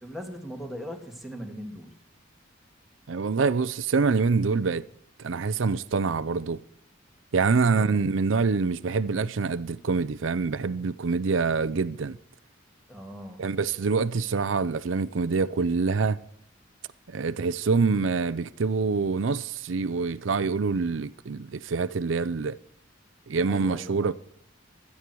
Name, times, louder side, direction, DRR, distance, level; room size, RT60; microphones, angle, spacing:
voice 1, 0.0-1.9 7.7-8.0 12.9-13.4 23.5-24.1, equal, ahead, 2.6 m, -39 dB
voice 2, 3.1-4.8 5.2-6.6 7.3-12.2 13.4-16.2 17.1-22.6 23.3-24.1, right 4 dB, 80° right, 0.5 m, -25 dB
16.5 x 12.5 x 4.6 m
head